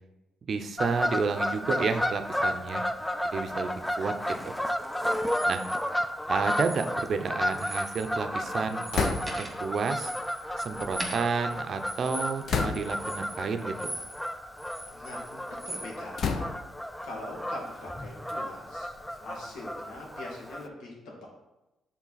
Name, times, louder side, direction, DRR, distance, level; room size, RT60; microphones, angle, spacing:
voice 1, 0.5-2.8 3.2-4.5 5.5-5.6 6.3-10.1 10.6-13.9, right 5 dB, 50° right, 7 dB, 0.6 m, -31 dB
Fowl / Bird vocalization bird call bird song, 0.8-20.7, equal, 5° left, 0.4 m, -33 dB
sound 1, 5.1-5.8 6.4-7.2 7.5-8.1 8.4-14.3 14.6-15.9, right 1 dB, 10° right, 1.6 m, -41 dB
sound 2, 8.9-9.6 10.5-11.6 12.5-13.1 14.0-14.2 14.7-15.4 16.2-16.9 17.7-19.6, left 5 dB, 60° left, 0.6 m, -33 dB
voice 2, 14.9-16.6 17.0-18.9 19.2-21.3, left 2 dB, 90° left, -2 dB, 1.8 m, -42 dB
7.2 x 3.8 x 4.0 m, 0.98 s
cardioid pair, 90°, 0 cm